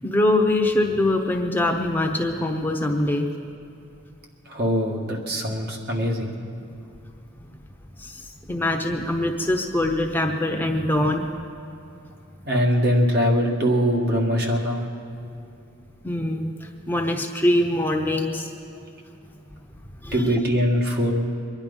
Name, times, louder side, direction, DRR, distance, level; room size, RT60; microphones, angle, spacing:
voice 1, 0.0-3.3 8.0-11.3 16.0-18.5 20.0-20.4, left 1 dB, 10° left, 3 dB, 0.9 m, -23 dB
voice 2, 4.5-6.3 12.5-14.9 20.1-21.1, equal, 55° right, 0 dB, 2.1 m, -22 dB
23.5 x 10.5 x 5.5 m, 2.8 s
head